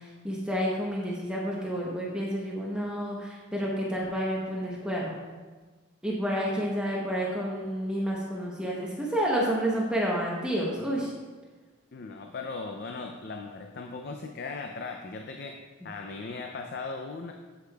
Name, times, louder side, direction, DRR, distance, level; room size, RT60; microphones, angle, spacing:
voice 1, 0.0-5.2 6.0-11.1, equal, 5° right, -4 dB, 0.8 m, -30 dB
voice 2, 11.9-15.6 15.8-17.3, left 4 dB, 45° left, 4 dB, 0.4 m, -38 dB
8.2 x 7.9 x 2.3 m, 1.3 s
head